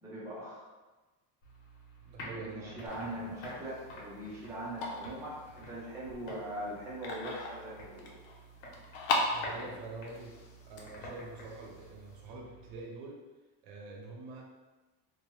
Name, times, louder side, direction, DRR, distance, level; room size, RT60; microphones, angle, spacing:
voice 1, 0.0-0.7 2.3-8.1, right 1 dB, 5° right, -8 dB, 0.6 m, -41 dB
sound 1, 1.4-12.8, equal, 75° left, 1.1 m, -49 dB
voice 2, 2.0-3.3 9.3-10.3 10.7-13.2 13.6-14.5, right 3 dB, 60° right, -2 dB, 0.6 m, -46 dB
sound 2, 2.8-12.3, left 2 dB, 90° left, 0.7 m, -39 dB
2.9 x 2.2 x 3.1 m, 1.2 s
cardioid pair, 155°, 45 cm